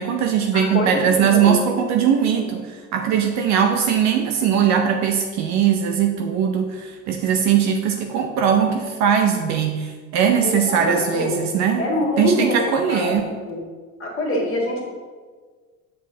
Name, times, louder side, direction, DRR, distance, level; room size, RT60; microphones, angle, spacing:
voice 1, 0.0-11.9 12.2-13.3, right 8 dB, 40° right, 4 dB, 0.6 m, -20 dB
voice 2, 0.5-1.6 2.4-2.5 10.4-11.5 11.8-12.6 12.9-13.2 13.5-13.6 14.0-14.8, left 1 dB, 30° left, -2 dB, 2.1 m, -24 dB
7.6 x 6.2 x 2.8 m, 1.5 s
hypercardioid pair, 75°, 44 cm